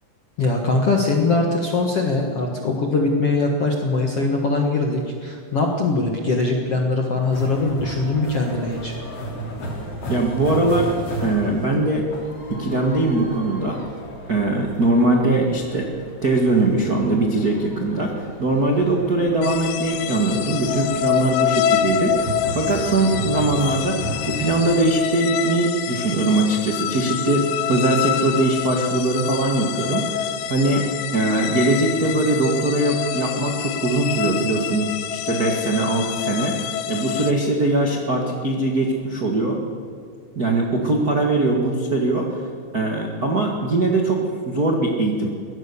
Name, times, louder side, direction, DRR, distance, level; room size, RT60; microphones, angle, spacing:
voice 1, 0.4-8.9, left 3 dB, 60° left, 1 dB, 1.6 m, -21 dB
sound 1, 7.2-24.9, equal, 35° left, 4.0 m, -35 dB
voice 2, 10.1-10.9 11.2-12.1 12.5-13.8 14.3-15.9 16.2-24.0 24.2-39.6 40.3-42.4 42.7-45.3, right 2 dB, 70° right, 1 dB, 0.8 m, -21 dB
sound 2, 19.4-37.3, left 10 dB, 85° left, 1.9 m, -26 dB
23.0 x 18.0 x 7.1 m, 2.2 s
omnidirectional pair, 5.2 m